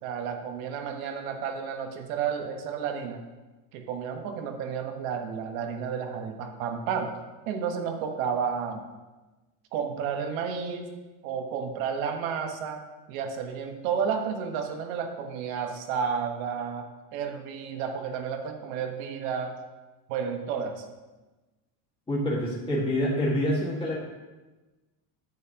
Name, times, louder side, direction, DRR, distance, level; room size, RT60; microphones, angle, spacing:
voice 1, 0.0-3.2 3.7-7.1 7.5-8.9 9.7-10.9 11.2-12.8 13.1-19.6 20.1-20.8, right 6 dB, 75° right, 5 dB, 1.3 m, -31 dB
voice 2, 22.1-24.0, equal, 15° left, -5 dB, 1.9 m, -26 dB
9.4 x 9.3 x 2.9 m, 1.2 s
cardioid pair, 150°, 41 cm